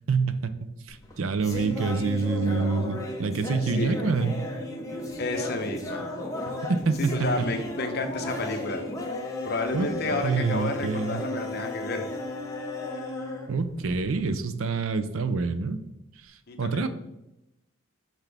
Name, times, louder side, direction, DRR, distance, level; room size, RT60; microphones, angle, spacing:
voice 1, 0.1-0.5 0.9-4.4 6.5-7.5 9.7-11.2 13.5-15.8 16.6-16.9, right 4 dB, 75° right, 11 dB, 0.5 m, -27 dB
sound 1, 0.9-14.3, left 1 dB, 15° left, 0.8 m, -35 dB
voice 2, 3.6-4.0 5.2-6.1 7.0-8.8 9.4-12.1 16.5-16.9, left 2 dB, 50° left, 5 dB, 0.8 m, -31 dB
5.8 x 5.8 x 3.4 m, 0.90 s
head